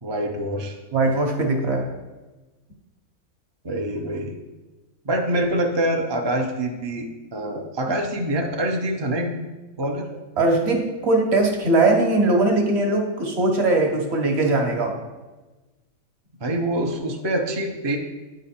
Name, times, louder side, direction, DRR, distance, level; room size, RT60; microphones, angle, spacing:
voice 1, 0.0-0.8 3.6-4.3 5.0-9.4 9.8-10.1 16.4-18.0, right 1 dB, 40° right, 1 dB, 0.4 m, -25 dB
voice 2, 0.9-1.9 10.4-15.0, right 2 dB, 55° right, 2 dB, 1.2 m, -20 dB
9.0 x 3.8 x 4.3 m, 1.2 s
omnidirectional pair, 1.5 m